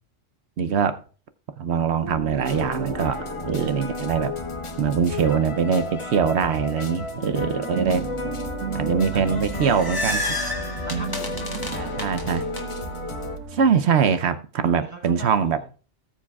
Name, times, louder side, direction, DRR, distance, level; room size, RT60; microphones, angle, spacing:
voice 1, 0.6-1.0 1.6-3.2 3.5-4.3 4.8-8.0 8.7-10.2 11.8-12.4 13.5-15.6, right 7 dB, 65° right, 0.9 m, -23 dB
sound 1, 2.0-7.3 7.6-13.9, right 6 dB, 80° right, 1.3 m, -35 dB
sound 2, 2.4-13.4, left 4 dB, 35° left, 0.5 m, -33 dB
voice 2, 9.1-9.5 10.2-12.5 14.8-15.7, right 1 dB, 15° right, 1.3 m, -41 dB
sound 3, 9.3-12.6, left 1 dB, 20° left, 1.2 m, -30 dB
18.0 x 7.3 x 2.3 m
omnidirectional pair, 1.3 m